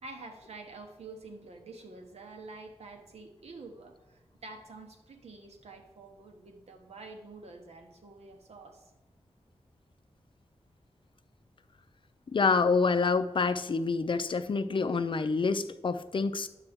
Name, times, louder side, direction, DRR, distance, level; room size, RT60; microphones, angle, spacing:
voice 1, 0.0-8.9, right 3 dB, 90° right, 4 dB, 1.0 m, -48 dB
voice 2, 12.3-16.5, left 4 dB, 50° left, 11 dB, 0.5 m, -27 dB
9.9 x 6.8 x 3.6 m, 1.0 s
wide cardioid pair, 80°, 11 cm